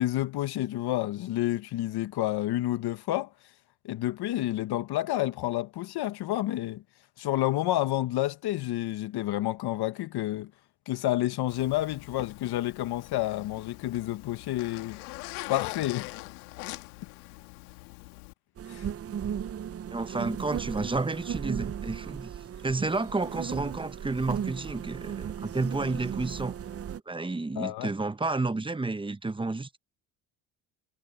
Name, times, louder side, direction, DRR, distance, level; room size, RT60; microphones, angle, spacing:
voice 1, 0.0-3.3 3.8-6.8 7.2-10.5 10.9-15.0 15.5-16.2 18.7-18.9 27.5-27.9, left 15 dB, 60° left, 1.7 m, -29 dB
Zipper (clothing), 11.5-18.3, left 23 dB, 85° left, 2.6 m, -42 dB
sound 1, 18.6-27.0, right 8 dB, 30° right, 0.8 m, -36 dB
voice 2, 19.9-22.3 22.6-26.5 27.1-29.8, right 3 dB, 10° right, 1.1 m, -31 dB
hypercardioid pair, 75°, 44 cm